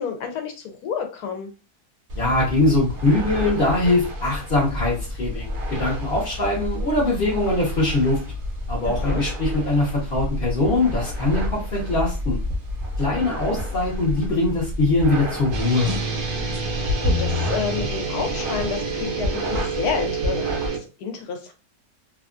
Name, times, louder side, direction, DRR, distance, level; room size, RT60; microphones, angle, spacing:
voice 1, 0.0-1.5 8.9-9.2 16.4-21.5, left 6 dB, 75° left, 5 dB, 1.2 m, -30 dB
sound 1, 2.1-20.7, left 1 dB, 50° right, 0.7 m, -30 dB
voice 2, 2.2-8.2 8.7-12.4 13.0-15.9, left 2 dB, 45° left, -7 dB, 0.8 m, -22 dB
sound 2, 15.5-20.8, right 2 dB, 65° right, 1.0 m, -26 dB
2.9 x 2.3 x 2.4 m, 0.32 s
omnidirectional pair, 1.7 m